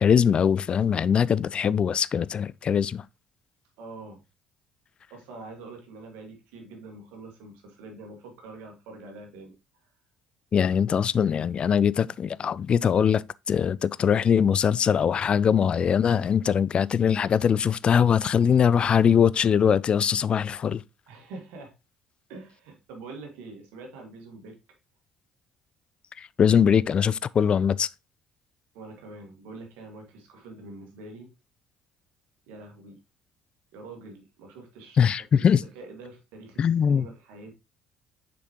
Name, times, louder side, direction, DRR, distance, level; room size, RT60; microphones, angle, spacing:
voice 1, 0.0-3.0 10.5-20.8 26.2-27.9 35.0-35.6 36.6-37.1, left 7 dB, 40° left, 0.3 m, -22 dB
voice 2, 3.8-4.2 5.1-9.6 21.1-21.7 22.3-24.6 28.7-31.3 32.5-33.0 33.7-35.1 35.3-37.5, right 3 dB, 70° right, 1.9 m, -44 dB
6.5 x 5.2 x 3.0 m
figure-of-eight pair, 50°, 3 cm